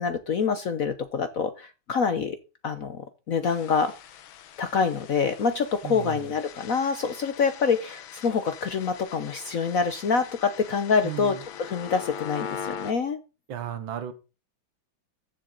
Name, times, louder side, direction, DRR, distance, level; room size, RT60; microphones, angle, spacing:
voice 1, 0.0-2.4 2.6-3.9 4.6-13.2, left 5 dB, 55° left, 10 dB, 1.0 m, -26 dB
sound 1, 3.4-12.9, left 8 dB, 80° left, 1.7 m, -42 dB
voice 2, 5.8-6.3 11.0-11.4 13.5-14.1, right 10 dB, 70° right, 12 dB, 1.9 m, -34 dB
14.5 x 7.3 x 3.9 m, 0.31 s
omnidirectional pair, 2.2 m